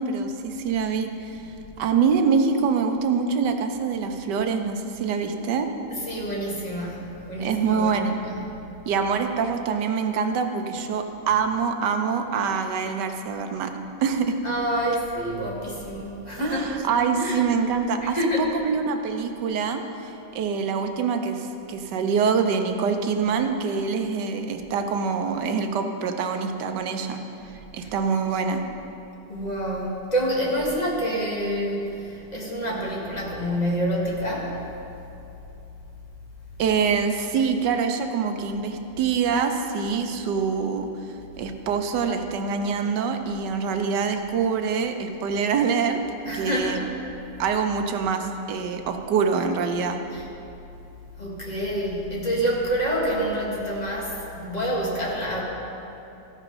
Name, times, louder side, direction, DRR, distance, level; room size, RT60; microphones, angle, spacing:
voice 1, 0.0-1.4 1.8-5.7 7.4-8.2 8.9-13.7 14.0-14.4 16.4-27.2 27.7-28.6 36.6-46.0 46.3-46.9 47.4-50.0, right 5 dB, 75° right, 6 dB, 1.3 m, -25 dB
voice 2, 6.1-8.4 14.4-16.7 17.1-17.4 18.0-18.5 27.8-27.9 29.3-34.5 46.2-46.8 50.1-50.2 51.2-55.4, equal, 25° left, -4 dB, 1.5 m, -27 dB
14.5 x 5.2 x 5.3 m, 2.9 s
omnidirectional pair, 2.0 m